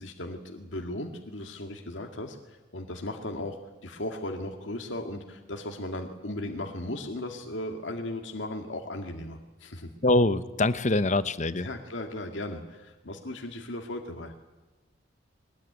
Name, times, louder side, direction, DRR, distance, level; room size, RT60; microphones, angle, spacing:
voice 1, 0.0-9.9 11.5-14.3, left 1 dB, 80° left, 3 dB, 1.9 m, -37 dB
voice 2, 10.0-11.7, left 2 dB, 40° left, 13 dB, 1.0 m, -24 dB
22.5 x 19.5 x 9.6 m, 1.2 s
head